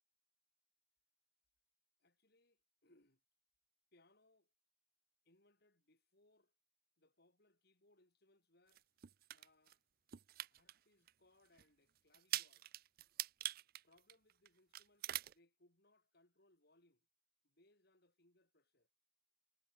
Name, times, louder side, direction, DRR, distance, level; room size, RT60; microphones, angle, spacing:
voice 1, 2.0-3.2 3.9-4.5 5.2-6.5 7.0-8.9 9.3-9.8 10.5-12.7 13.8-17.1 17.4-18.9, left 2 dB, 55° left, 5.9 m, -73 dB
sound 1, 8.7-9.7 10.1-10.7 11.1-11.2 11.6-11.7 12.1-14.5 14.7-15.3, right 14 dB, 50° right, 0.4 m, -43 dB
head